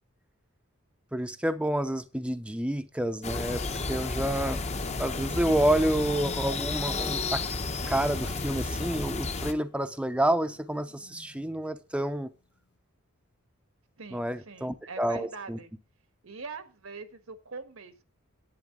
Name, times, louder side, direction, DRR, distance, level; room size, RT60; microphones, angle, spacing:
voice 1, 1.1-3.6 3.9-4.6 5.0-7.4 7.9-12.3 14.1-15.6, right 1 dB, 5° right, 0.6 m, -29 dB
sound 1, 3.2-9.5, left 3 dB, 30° left, 0.9 m, -32 dB
sound 2, 5.4-12.8, left 2 dB, 55° left, 1.5 m, -53 dB
voice 2, 14.0-15.7 16.2-18.0, right 4 dB, 80° right, 1.5 m, -43 dB
10.5 x 8.6 x 3.7 m
head